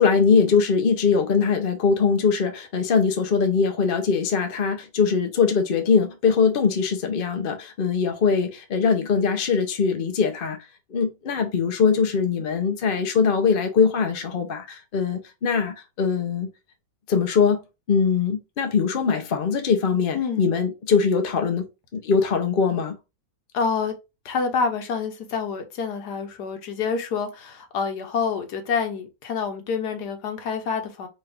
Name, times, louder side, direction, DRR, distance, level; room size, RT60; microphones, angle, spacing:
voice 1, 0.0-10.6 10.9-16.5 17.1-17.6 17.9-21.7 21.9-22.9, left 5 dB, 85° left, 0.4 m, -22 dB
voice 2, 20.1-20.5 23.5-24.0 24.2-31.1, left 5 dB, 60° left, 1.2 m, -27 dB
5.3 x 2.5 x 3.4 m
omnidirectional pair, 2.2 m